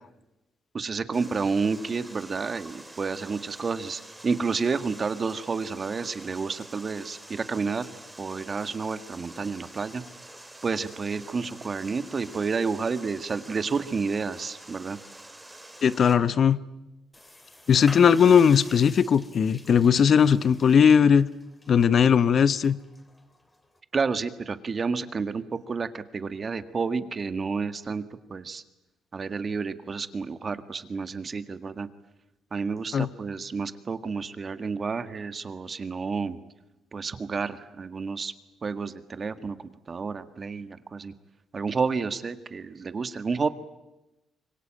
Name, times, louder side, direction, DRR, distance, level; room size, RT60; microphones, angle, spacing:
voice 1, 0.7-7.9 8.2-10.0 10.6-15.0 23.9-28.0 28.3-28.6 29.1-31.9 32.5-36.4 36.9-38.3 38.6-39.6 39.9-41.1 41.5-43.5, right 5 dB, 40° right, 11 dB, 1.7 m, -30 dB
Water, 1.1-16.1, right 1 dB, 10° right, 3.7 m, -47 dB
voice 2, 15.8-16.6 17.7-21.3 21.7-22.8 32.9-33.1, left 7 dB, 55° left, 15 dB, 0.9 m, -19 dB
sound 1, 17.1-23.8, left 1 dB, 15° left, 3.7 m, -48 dB
25.5 x 22.0 x 8.9 m, 1.0 s
cardioid pair, 90°, 0 cm